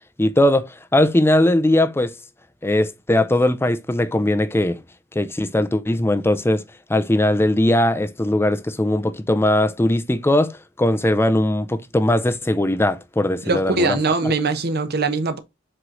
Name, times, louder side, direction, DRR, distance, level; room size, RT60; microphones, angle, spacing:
voice 1, 0.2-2.1 2.6-4.8 5.2-6.6 6.9-14.0, left 1 dB, 10° left, 0.5 m, -19 dB
voice 2, 13.4-15.4, right 3 dB, 55° right, 1.0 m, -21 dB
7.8 x 3.2 x 3.8 m
head